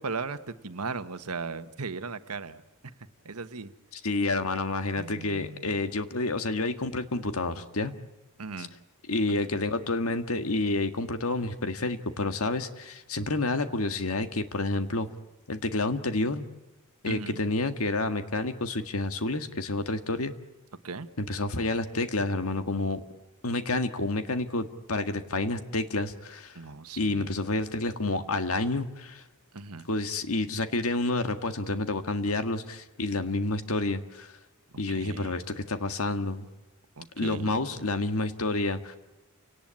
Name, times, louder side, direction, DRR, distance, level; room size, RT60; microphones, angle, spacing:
voice 1, 0.0-2.6 3.2-3.7 5.0-5.8 8.4-8.7 9.3-9.5 17.0-17.4 20.8-21.1 26.5-27.4 29.5-29.9 34.9-35.4 37.0-37.9, right 4 dB, 85° right, 11 dB, 1.3 m, -37 dB
voice 2, 3.9-7.9 8.6-8.7 9.1-15.1 15.5-16.4 17.0-20.3 21.2-23.0 23.4-26.6 27.0-29.2 29.9-34.3 34.8-36.5 37.2-39.0, left 2 dB, 70° left, 8 dB, 1.7 m, -29 dB
29.5 x 18.5 x 8.9 m, 1.0 s
head